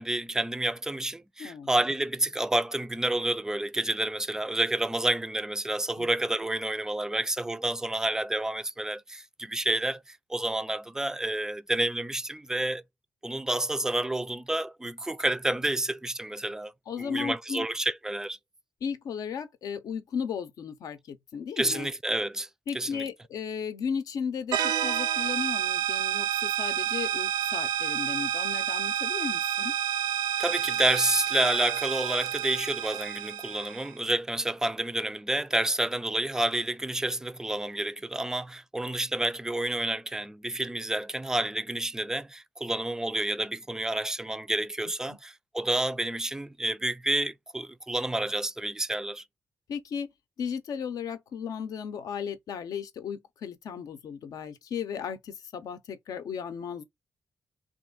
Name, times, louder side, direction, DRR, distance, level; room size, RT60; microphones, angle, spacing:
voice 1, 0.0-12.8 13.2-16.7 17.0-18.4 21.6-22.5 22.7-23.0 30.4-49.2, right 1 dB, 10° right, 0.3 m, -29 dB
voice 2, 16.9-17.7 18.8-21.9 22.7-29.7 45.1-45.2 49.7-50.1 50.4-56.8, left 7 dB, 75° left, 0.7 m, -35 dB
sound 1, 24.5-33.9, right 10 dB, 90° right, 0.4 m, -29 dB
3.0 x 2.5 x 3.6 m
cardioid pair, 105°, 6 cm